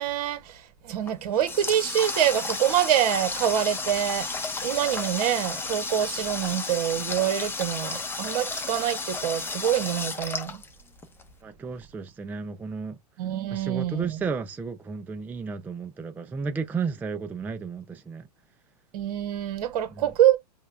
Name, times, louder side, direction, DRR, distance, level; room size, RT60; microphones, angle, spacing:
voice 1, 0.0-10.6 13.2-14.2 18.9-20.4, right 11 dB, 60° right, 1.3 m, -26 dB
Water tap faucet, 1.0-11.2, left 3 dB, 10° left, 0.8 m, -33 dB
voice 2, 11.4-13.0 13.5-18.3 19.9-20.0, right 5 dB, 10° right, 0.3 m, -33 dB
5.4 x 2.3 x 3.3 m
hypercardioid pair, 120°, 21 cm